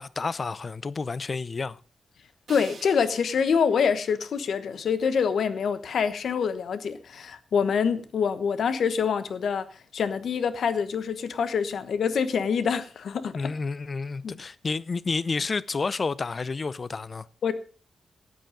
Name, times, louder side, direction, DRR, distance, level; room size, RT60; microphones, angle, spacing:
voice 1, 0.0-1.8 13.3-17.3, left 4 dB, 40° left, 0.5 m, -30 dB
voice 2, 2.5-9.7 9.9-13.3 14.2-14.4 17.4-17.5, left 6 dB, 75° left, 1.1 m, -26 dB
sound 1, 2.5-5.5, right 5 dB, 65° right, 2.7 m, -50 dB
12.5 x 9.1 x 5.2 m
cardioid pair, 90°, 0 cm